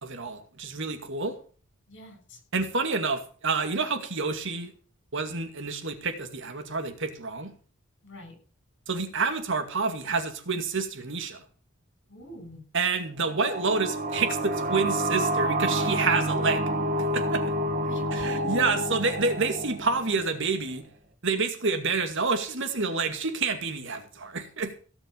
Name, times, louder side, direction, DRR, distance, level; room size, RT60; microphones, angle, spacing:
voice 1, 0.0-1.4 2.5-4.7 5.1-7.5 8.9-11.4 12.7-16.7 17.0-17.5 18.2-20.9 21.2-24.8, right 4 dB, 65° right, 8 dB, 2.3 m, -28 dB
voice 2, 1.9-2.4 8.0-8.3 12.1-12.6 17.8-18.8, left 2 dB, 60° left, 5 dB, 7.3 m, -43 dB
sound 1, 13.2-20.6, right 1 dB, 45° right, 1.8 m, -29 dB
17.5 x 6.2 x 8.5 m, 0.41 s
head